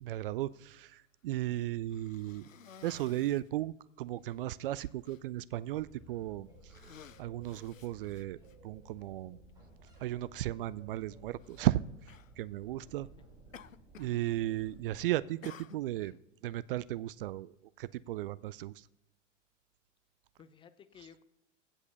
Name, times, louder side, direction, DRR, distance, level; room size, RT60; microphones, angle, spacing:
voice 1, 0.0-2.5 2.8-6.5 6.8-6.9 7.2-9.4 10.0-13.1 14.0-16.2 16.4-18.9, right 15 dB, 45° right, 18 dB, 0.4 m, -35 dB
Cough, 1.9-3.5 4.2-4.4 4.7-5.2 6.0-6.2 6.6-8.6 9.5-9.6 11.4-11.7 12.1-12.3 13.5-14.2 14.5-14.9 15.4-16.2, left 8 dB, 90° left, 0.5 m, -54 dB
sound 1, 5.7-15.0, right 1 dB, 10° right, 4.5 m, -57 dB
voice 2, 20.4-21.2, left 7 dB, 15° left, 13 dB, 0.4 m, -57 dB
16.0 x 5.5 x 6.8 m, 0.92 s
figure-of-eight pair, 95°, 38 cm